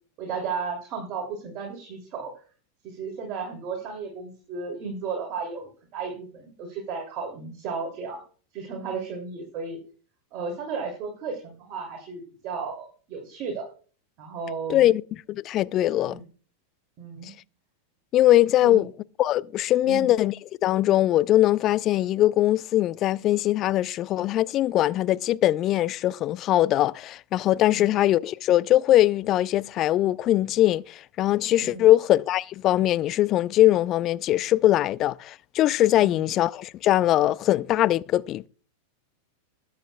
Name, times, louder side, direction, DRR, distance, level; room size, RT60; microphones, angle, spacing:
voice 1, 0.2-2.3 2.8-8.2 8.5-9.8 10.3-13.7 14.2-14.9 16.1-16.3 17.0-17.3 18.6-18.9 19.8-20.1 27.7-27.9 31.6-31.9 36.0-36.2, right 5 dB, 40° right, 2.6 m, -34 dB
voice 2, 14.7-15.0 15.3-16.2 18.1-18.9 19.2-20.4 20.6-38.5, left 14 dB, 35° left, 0.4 m, -21 dB
20.0 x 8.1 x 2.2 m
figure-of-eight pair, 90°, 0 cm